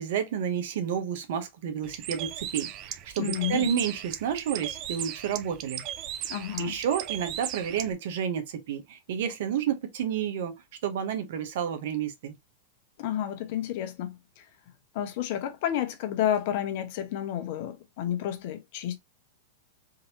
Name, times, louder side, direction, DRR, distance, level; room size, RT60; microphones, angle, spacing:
voice 1, 0.0-5.8 6.6-10.5 10.8-12.3, right 8 dB, 65° right, 1.0 m, -30 dB
Bird, 1.8-7.9, right 10 dB, 40° right, 0.5 m, -37 dB
voice 2, 3.2-3.7 6.3-6.8 13.0-14.4 14.9-19.0, left 10 dB, 60° left, 0.9 m, -30 dB
3.8 x 2.9 x 2.8 m
hypercardioid pair, 120°, 0 cm